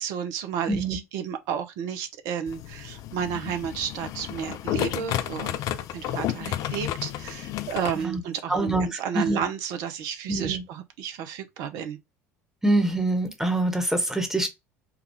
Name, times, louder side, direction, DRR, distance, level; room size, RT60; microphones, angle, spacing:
voice 1, 0.0-5.6 5.9-12.0, right 8 dB, 50° right, 0.6 m, -32 dB
voice 2, 0.7-1.0 8.0-8.2 8.5-9.4 10.3-10.6 12.6-14.5, right 2 dB, 5° right, 1.1 m, -25 dB
sound 1, 2.5-8.0, left 11 dB, 45° left, 0.4 m, -32 dB
4.6 x 2.3 x 3.4 m
figure-of-eight pair, 65°, 8 cm